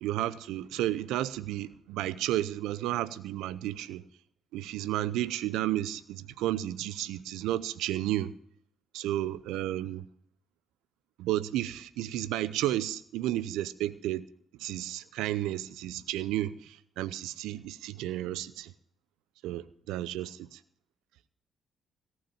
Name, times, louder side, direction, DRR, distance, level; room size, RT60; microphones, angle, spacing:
voice 1, 0.0-4.0 4.5-8.3 8.9-10.0 11.2-14.3 14.6-18.7 19.4-20.6, right 14 dB, 75° right, 0.6 m, -32 dB
17.5 x 6.2 x 8.8 m
hypercardioid pair, 45°, 0 cm